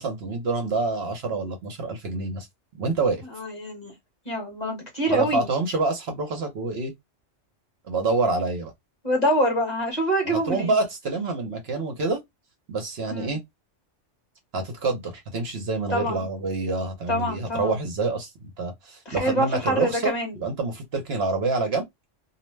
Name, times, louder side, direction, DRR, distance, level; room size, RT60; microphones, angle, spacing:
voice 1, 0.0-2.5 2.8-3.2 5.1-6.9 7.9-8.7 10.3-12.2 12.7-13.4 14.5-21.8, right 3 dB, 60° right, 0.9 m, -27 dB
voice 2, 3.3-3.9 4.2-5.5 9.0-10.8 13.1-13.4 15.9-16.2 17.1-17.8 19.1-20.3, equal, 35° left, 1.2 m, -25 dB
2.6 x 2.0 x 3.1 m
omnidirectional pair, 1.3 m